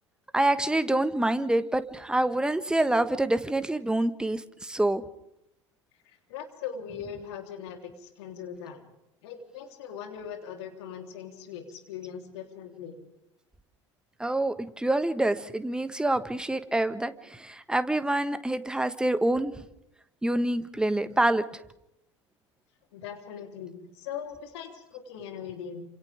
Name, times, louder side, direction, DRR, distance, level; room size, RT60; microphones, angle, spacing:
voice 1, 0.3-5.0 14.2-19.5 20.2-21.4, right 1 dB, 5° right, 11 dB, 1.4 m, -26 dB
voice 2, 6.1-8.8 9.2-13.0 22.9-25.8, left 8 dB, 65° left, 3 dB, 3.6 m, -40 dB
28.5 x 27.0 x 3.6 m, 0.81 s
figure-of-eight pair, 75°, 15 cm